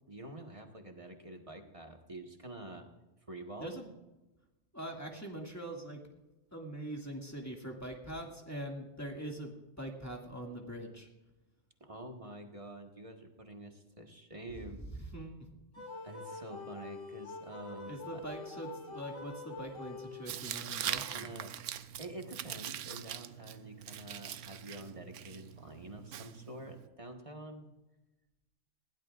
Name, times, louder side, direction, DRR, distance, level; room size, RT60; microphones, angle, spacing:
voice 1, 0.1-2.9 3.3-3.9 11.8-15.1 16.0-18.2 20.8-27.7, right 1 dB, 30° right, 3 dB, 1.5 m, -47 dB
voice 2, 4.7-6.0 6.5-11.1 15.1-15.5 15.8-15.9 17.9-21.3, right 1 dB, 15° left, 0 dB, 2.2 m, -43 dB
sound 1, 15.7-20.6, left 3 dB, 90° left, 2.1 m, -46 dB
Tearing, 20.3-26.9, right 10 dB, 85° right, 1.0 m, -42 dB
20.0 x 16.5 x 2.5 m, 1.0 s
omnidirectional pair, 1.3 m